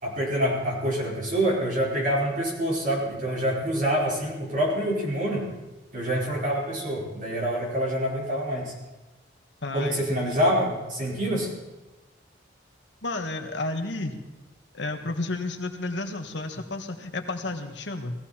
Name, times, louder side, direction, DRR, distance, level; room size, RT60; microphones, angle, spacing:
voice 1, 0.0-5.5 5.9-8.7 9.7-11.5, equal, 45° right, -4 dB, 5.0 m, -26 dB
voice 2, 9.6-10.4 13.0-14.2 14.7-18.1, left 2 dB, 70° left, 5 dB, 1.6 m, -32 dB
19.5 x 15.0 x 4.4 m, 1.1 s
head